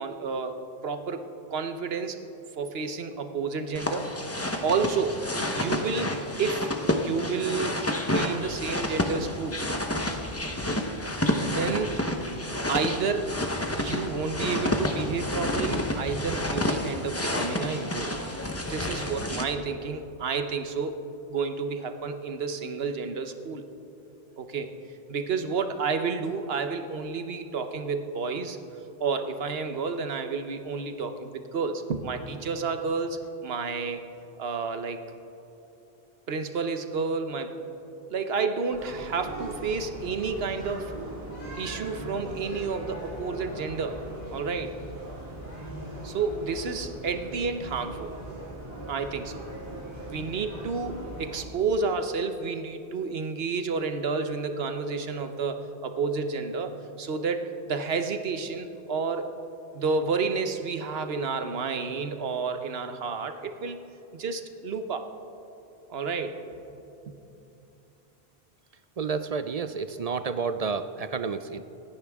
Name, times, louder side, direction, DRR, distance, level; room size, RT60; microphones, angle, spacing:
voice 1, 0.0-2.2 2.6-4.1 4.6-5.3 5.5-7.8 8.1-9.6 11.4-12.0 12.7-13.4 13.8-18.2 18.7-21.0 21.3-23.6 24.4-24.7 25.1-28.6 29.0-34.0 34.4-35.0 36.3-37.5 38.1-41.0 41.6-44.0 44.3-44.8 46.0-48.1 48.9-49.3 50.0-59.3 59.7-63.8 64.1-65.1 65.9-66.4 67.1-67.2, right 4 dB, 75° right, 8 dB, 1.1 m, -30 dB
sound 1, 3.7-19.4, left 1 dB, 15° left, 0.9 m, -29 dB
sound 2, 38.7-51.4, right 1 dB, 70° left, 4.1 m, -39 dB
voice 2, 69.0-71.6, right 5 dB, 50° right, 11 dB, 0.5 m, -30 dB
27.0 x 10.0 x 3.6 m, 2.8 s
omnidirectional pair, 1.0 m